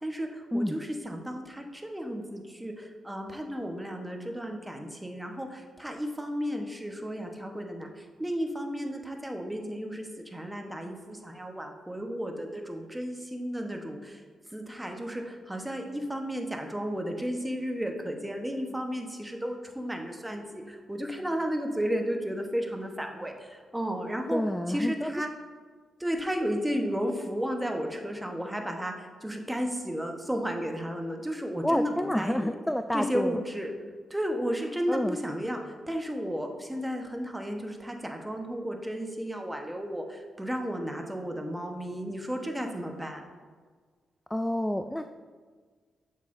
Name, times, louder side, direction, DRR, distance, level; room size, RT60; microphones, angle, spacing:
voice 1, 0.0-24.4 24.7-25.3 26.0-32.5 32.9-33.7 34.1-43.2, equal, 10° right, 3 dB, 1.0 m, -33 dB
voice 2, 24.3-25.1 31.6-33.3 34.9-35.2 44.3-45.1, left 1 dB, 5° left, 8 dB, 0.3 m, -28 dB
7.0 x 5.9 x 2.6 m, 1.5 s
supercardioid pair, 50°, 0 cm